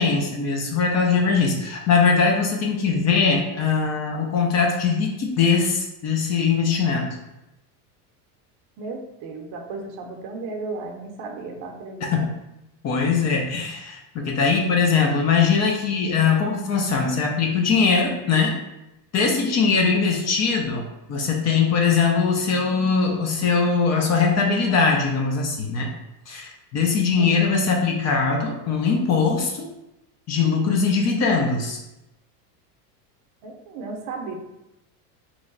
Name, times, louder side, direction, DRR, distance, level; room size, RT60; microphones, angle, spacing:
voice 1, 0.0-7.2 12.1-12.2 12.8-18.5 19.1-20.8 21.1-25.9 26.3-29.7 30.3-31.8, left 5 dB, 35° left, 1 dB, 0.6 m, -21 dB
voice 2, 8.8-12.3 27.2-27.4 33.4-34.3, right 3 dB, 50° right, 2 dB, 0.7 m, -34 dB
3.1 x 2.2 x 3.8 m, 0.92 s
supercardioid pair, 105°, 47 cm